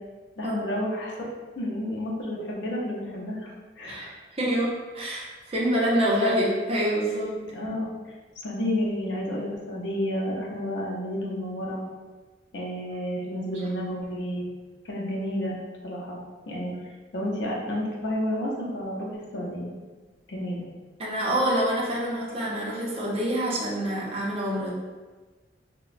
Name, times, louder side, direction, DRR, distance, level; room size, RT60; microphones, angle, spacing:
voice 1, 0.4-1.3 1.6-4.2 7.4-7.9 8.4-11.8 12.5-14.5 14.8-15.6 15.8-16.2 16.5-16.7 17.1-19.7 20.3-20.7, left 1 dB, 75° left, -3 dB, 0.6 m, -31 dB
voice 2, 3.8-7.4 21.0-24.7, equal, 35° right, -4 dB, 0.6 m, -26 dB
2.9 x 2.1 x 2.4 m, 1.3 s
head